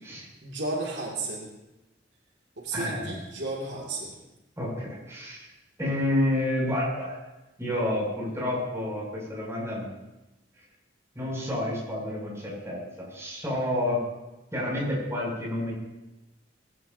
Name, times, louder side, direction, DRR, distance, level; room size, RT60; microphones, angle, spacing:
voice 1, 0.4-1.5 2.6-4.2, right 2 dB, 75° right, -2 dB, 2.4 m, -33 dB
voice 2, 2.7-3.2 4.6-5.5 5.8-7.2 7.6-10.0 11.1-14.0 14.5-15.7, left 1 dB, 15° right, -5 dB, 6.5 m, -29 dB
19.5 x 15.5 x 2.8 m, 1.0 s
head